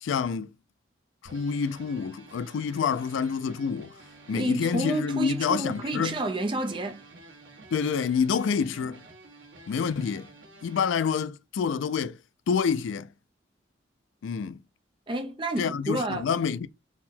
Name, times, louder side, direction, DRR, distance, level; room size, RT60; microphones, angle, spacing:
voice 1, 0.0-0.5 1.3-3.9 4.3-6.2 7.7-9.0 9.7-10.3 10.6-12.2 12.5-13.1 14.2-14.6 15.6-16.7, left 6 dB, 80° left, 0.3 m, -27 dB
sound 1, 1.2-11.1, right 2 dB, 75° right, 1.1 m, -50 dB
voice 2, 4.3-7.0 15.1-16.3, right 2 dB, 25° right, 0.5 m, -30 dB
3.9 x 2.1 x 4.1 m
head